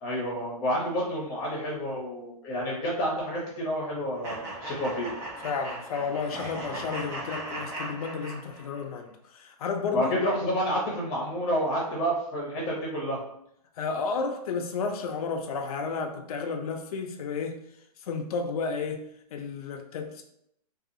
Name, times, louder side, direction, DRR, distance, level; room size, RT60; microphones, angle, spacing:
voice 1, 0.0-5.1 9.9-13.2, equal, 20° left, -4 dB, 0.7 m, -29 dB
sound 1, 4.2-8.8, right 1 dB, 15° right, 0.3 m, -38 dB
voice 2, 5.4-10.1 13.8-17.6 18.0-19.1 19.3-20.2, left 5 dB, 65° left, 4 dB, 0.4 m, -32 dB
2.7 x 2.3 x 2.5 m, 0.74 s
hypercardioid pair, 160°, 21 cm